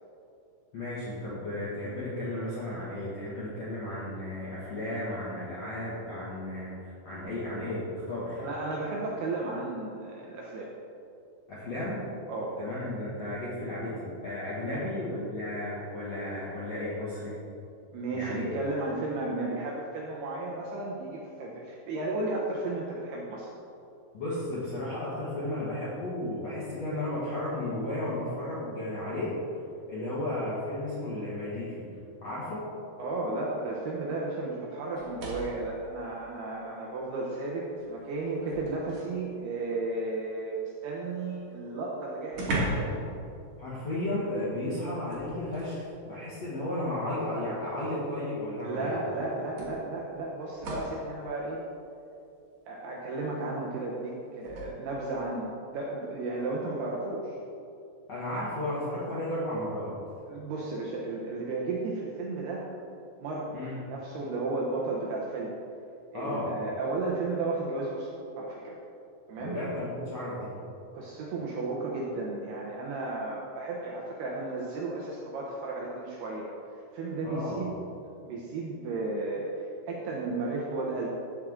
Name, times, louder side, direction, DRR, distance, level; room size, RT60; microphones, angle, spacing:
voice 1, 0.7-8.5 11.5-12.0 12.6-17.4 18.1-18.6 24.1-29.4 29.9-31.8 32.2-32.6 43.6-49.0 58.1-59.9 63.5-63.8 66.1-66.5 69.4-70.5 77.2-77.6, left 1 dB, 60° left, -9 dB, 1.7 m, -34 dB
voice 2, 8.4-10.7 12.3-12.6 14.6-14.8 17.9-23.5 33.0-43.0 48.6-51.6 52.7-57.4 60.3-62.7 63.2-63.5 63.9-65.6 66.1-68.1 68.4-68.8 69.3-69.6 70.9-76.5 76.9-77.7 78.2-81.1, right 2 dB, 75° right, -3 dB, 2.5 m, -34 dB
sound 1, 34.9-35.7 37.0-37.1 37.6-39.2 41.3-41.4 41.6-41.7 42.3-43.0 43.3-43.5 45.1-45.8 47.0-47.1 48.6-48.7 49.6-51.0 54.4-54.7, right 1 dB, 50° right, 2.2 m, -36 dB
14.0 x 6.4 x 3.7 m, 2.7 s
omnidirectional pair, 5.4 m